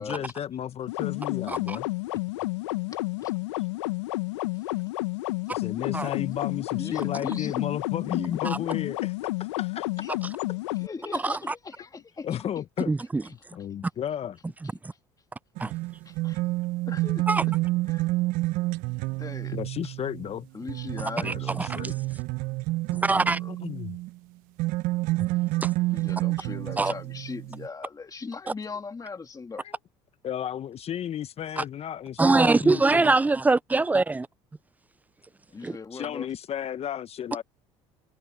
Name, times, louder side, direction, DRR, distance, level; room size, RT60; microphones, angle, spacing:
voice 1, 0.0-1.9 5.6-9.1 9.4-9.9 10.5-10.6 12.2-12.9 13.3-14.4 19.5-20.5 21.2-21.9 23.5-24.0 29.6-29.8 30.2-33.1 35.7-37.4, left 10 dB, 45° left, 1.1 m, -33 dB
sound 1, 0.9-10.9, left 21 dB, 80° left, 1.0 m, -31 dB
voice 2, 2.9-3.3 6.7-7.5 10.0-10.1 10.8-12.3 16.0-16.4 16.9-17.3 17.9-18.0 19.2-19.6 20.5-21.6 23.0-23.5 25.9-29.6 35.5-36.3, left 4 dB, 25° left, 2.7 m, -39 dB
voice 3, 12.9-13.2 14.6-14.7 15.6-15.7 17.3-17.4 21.2-21.8 23.1-23.4 25.6-25.7 26.8-26.9 31.6-31.7 32.2-34.3 35.6-35.8, right 3 dB, 10° right, 0.4 m, -23 dB
sound 2, 15.6-24.2 24.6-27.7, right 20 dB, 65° right, 1.0 m, -29 dB
hypercardioid pair, 70°, 15 cm